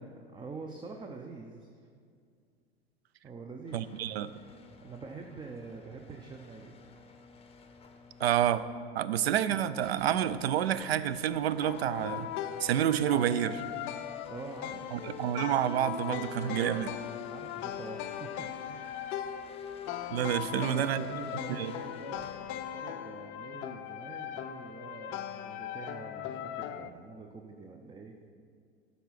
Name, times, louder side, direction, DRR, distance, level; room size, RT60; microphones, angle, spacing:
voice 1, 0.3-1.9 3.2-3.8 4.3-7.0 14.3-15.3 17.3-19.5 20.5-28.3, right 4 dB, 15° right, 4 dB, 0.5 m, -46 dB
sound 1, 3.7-22.7, left 4 dB, 20° left, 0.8 m, -55 dB
voice 2, 3.7-4.3 8.2-8.6 8.9-12.3 12.6-13.6 14.9-16.9 20.1-21.1 21.6-21.7, right 10 dB, 75° right, 14 dB, 0.5 m, -29 dB
sound 2, 11.6-26.9, left 10 dB, 40° left, 0.4 m, -39 dB
12.5 x 4.1 x 5.8 m, 2.2 s
figure-of-eight pair, 80°, 31 cm